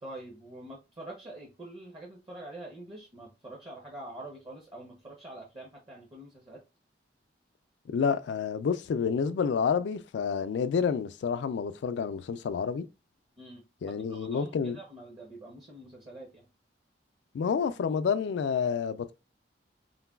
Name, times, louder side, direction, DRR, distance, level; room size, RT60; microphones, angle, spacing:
voice 1, 0.0-6.6 13.4-13.6 13.9-16.5, right 1 dB, 30° right, 0.7 m, -45 dB
voice 2, 7.9-12.9 13.8-14.8 17.3-19.1, left 6 dB, 75° left, 0.3 m, -29 dB
3.9 x 2.2 x 2.2 m
head